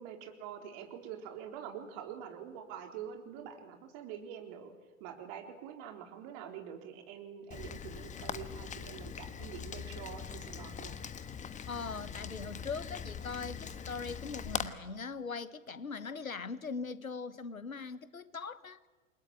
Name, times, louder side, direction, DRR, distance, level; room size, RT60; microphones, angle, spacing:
voice 1, 0.0-4.7 5.0-11.0, right 8 dB, 45° right, 4.1 m, -45 dB
Rain, 7.5-14.7, left 7 dB, 20° left, 1.3 m, -42 dB
voice 2, 11.7-18.8, left 5 dB, 85° left, 1.3 m, -41 dB
29.0 x 21.5 x 8.9 m
figure-of-eight pair, 90°, 41 cm